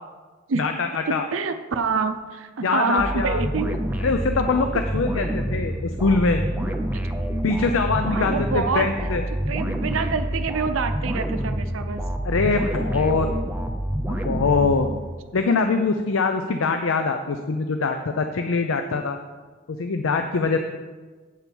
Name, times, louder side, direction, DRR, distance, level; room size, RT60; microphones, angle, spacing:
voice 1, 0.6-1.2 2.6-3.4 4.0-6.4 7.4-9.2 12.2-13.3 14.2-14.9 15.3-19.2 19.8-20.6, left 4 dB, 85° left, 6 dB, 0.5 m, -23 dB
voice 2, 1.1-3.8 8.0-8.9 9.5-12.0 13.0-13.3 14.6-15.1, right 5 dB, 85° right, 8 dB, 0.5 m, -27 dB
sound 1, 3.0-15.2, right 1 dB, 10° right, 0.6 m, -27 dB
8.2 x 4.5 x 7.0 m, 1.4 s
head